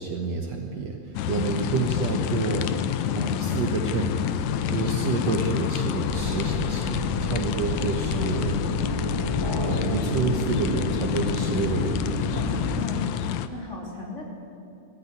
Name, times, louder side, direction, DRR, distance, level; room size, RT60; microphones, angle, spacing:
voice 1, 0.0-2.7 3.1-4.1 4.7-8.7 9.6-12.0, right 5 dB, 60° right, 3 dB, 2.1 m, -29 dB
sound 1, 1.1-13.5, left 9 dB, 70° left, 1.8 m, -27 dB
sound 2, 6.0-12.8, right 3 dB, 15° right, 1.2 m, -33 dB
voice 2, 12.3-13.1 13.5-14.2, left 2 dB, 20° left, -2 dB, 3.4 m, -36 dB
20.5 x 15.0 x 9.6 m, 2.8 s
omnidirectional pair, 3.8 m